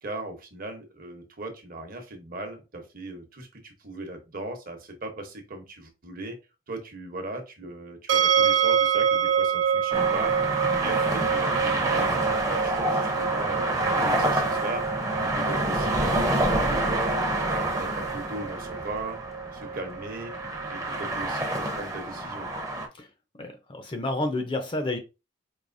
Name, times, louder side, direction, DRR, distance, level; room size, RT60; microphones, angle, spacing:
voice 1, 0.0-6.4 6.7-19.2 19.5-20.3 20.7-22.7, right 2 dB, 45° right, 5 dB, 0.9 m, -38 dB
sound 1, 8.1-21.1, right 8 dB, 75° right, 0.6 m, -28 dB
sound 2, 9.9-22.9, right 1 dB, 15° right, 0.7 m, -28 dB
voice 2, 23.4-25.0, left 2 dB, 25° left, 6 dB, 0.5 m, -30 dB
4.8 x 2.8 x 2.6 m, 0.27 s
head